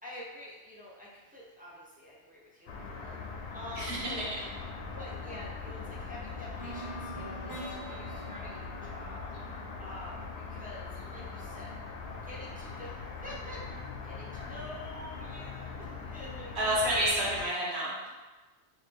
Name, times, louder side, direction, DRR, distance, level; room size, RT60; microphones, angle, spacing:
voice 1, 0.0-3.2 3.5-4.3 4.9-9.2 9.8-12.0 12.2-16.7 17.1-17.2, left 1 dB, 10° right, -6 dB, 0.4 m, -47 dB
sound 1, 2.7-17.5, left 4 dB, 70° left, 0.8 m, -41 dB
voice 2, 3.8-4.2 16.6-18.1, equal, 65° right, -5 dB, 1.2 m, -29 dB
sound 2, 6.6-10.6, right 1 dB, 20° left, 0.7 m, -45 dB
3.1 x 2.7 x 3.4 m, 1.2 s
omnidirectional pair, 1.2 m